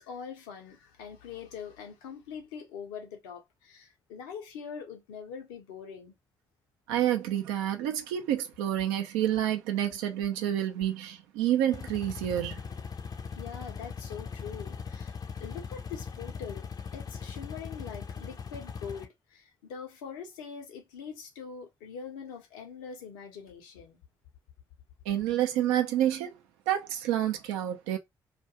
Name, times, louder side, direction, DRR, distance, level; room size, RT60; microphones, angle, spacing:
voice 1, 0.0-6.1 13.4-16.7 16.9-24.0, left 6 dB, 80° left, 0.7 m, -43 dB
voice 2, 6.9-12.6 25.1-26.3 26.7-28.0, right 11 dB, 80° right, 0.5 m, -28 dB
sound 1, 11.7-19.1, left 6 dB, 35° left, 0.5 m, -40 dB
2.4 x 2.3 x 2.8 m
hypercardioid pair, 45°, 11 cm